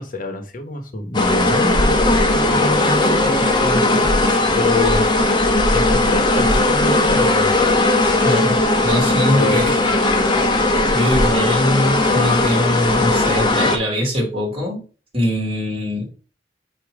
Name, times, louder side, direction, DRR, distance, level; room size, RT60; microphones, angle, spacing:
voice 1, 0.0-5.0 5.7-7.5 9.4-9.6, left 1 dB, 50° left, 6 dB, 1.3 m, -26 dB
sound 1, 1.1-13.8, left 2 dB, 25° left, 1.0 m, -17 dB
voice 2, 8.2-8.6 8.8-9.8 10.9-14.8 15.1-16.1, left 1 dB, 35° right, -2 dB, 2.8 m, -21 dB
8.8 x 3.0 x 4.7 m, 0.37 s
head